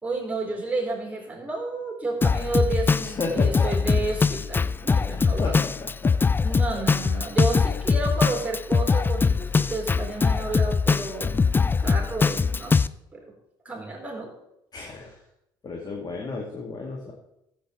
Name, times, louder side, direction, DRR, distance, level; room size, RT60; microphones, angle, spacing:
voice 1, 0.0-5.5 6.4-12.8 13.1-13.3 13.6-14.3, right 3 dB, 15° right, 0 dB, 4.2 m, -31 dB
Drum kit, 2.2-12.9, left 5 dB, 20° left, 0.3 m, -22 dB
voice 2, 3.0-3.7 5.4-6.1 6.7-6.8 14.7-15.2 15.6-17.1, left 3 dB, 35° left, 0 dB, 2.2 m, -33 dB
14.5 x 8.0 x 3.8 m, 0.82 s
hypercardioid pair, 60°, 12 cm